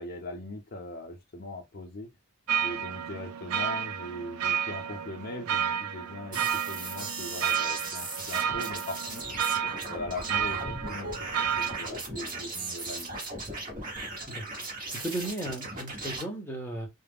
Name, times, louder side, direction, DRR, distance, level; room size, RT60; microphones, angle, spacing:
voice 1, 0.0-2.1 2.6-6.4 6.7-9.2 9.9-11.1 11.6-13.2, left 2 dB, 40° left, 0.5 m, -40 dB
sound 1, 2.5-11.9, right 9 dB, 80° right, 0.4 m, -31 dB
sound 2, 6.3-16.2, right 2 dB, 40° right, 1.1 m, -37 dB
voice 2, 14.9-16.9, right 1 dB, 10° left, 0.7 m, -35 dB
2.3 x 2.0 x 3.4 m
head